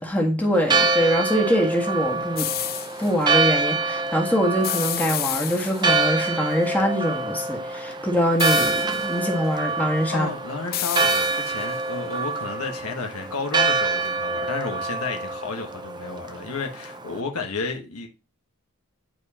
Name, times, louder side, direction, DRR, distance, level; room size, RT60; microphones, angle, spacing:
voice 1, 0.0-2.5 3.0-10.3, equal, 10° left, 1.6 m, -23 dB
Church bell, 0.5-17.2, right 3 dB, 20° right, 0.6 m, -26 dB
sound 1, 2.4-3.1 4.6-6.1 8.4-9.2 10.7-11.8, left 13 dB, 45° left, 0.5 m, -30 dB
voice 2, 10.1-18.1, left 3 dB, 80° left, 1.4 m, -32 dB
9.4 x 4.5 x 2.8 m
head